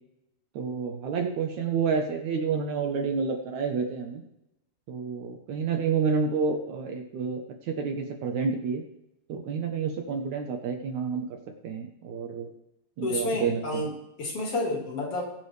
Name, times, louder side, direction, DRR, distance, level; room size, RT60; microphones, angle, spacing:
voice 1, 0.6-4.2 4.9-8.8 9.3-11.4 11.6-12.5 13.0-13.9, right 5 dB, 65° right, 3 dB, 2.2 m, -29 dB
voice 2, 13.0-15.2, left 2 dB, 45° left, -1 dB, 2.8 m, -30 dB
22.0 x 7.7 x 3.4 m, 0.88 s
omnidirectional pair, 3.9 m